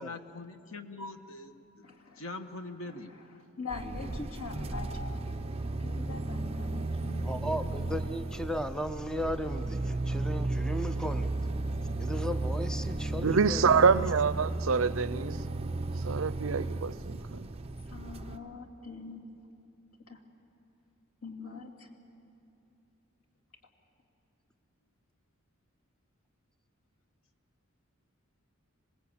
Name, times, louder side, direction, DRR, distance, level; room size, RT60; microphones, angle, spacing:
voice 1, 0.0-3.2, left 2 dB, 70° left, 1.4 m, -43 dB
voice 2, 1.8-2.2 2.8-3.3 3.6-5.2 5.8-8.0 17.9-19.2 20.1-20.2 21.2-21.9, left 4 dB, 90° left, 2.8 m, -43 dB
sound 1, 3.7-18.4, right 2 dB, 30° right, 0.7 m, -34 dB
voice 3, 7.2-11.3 12.0-13.9, equal, 5° left, 0.6 m, -36 dB
voice 4, 13.2-15.4 16.0-17.5, right 5 dB, 65° right, 0.6 m, -26 dB
27.0 x 19.5 x 8.7 m
head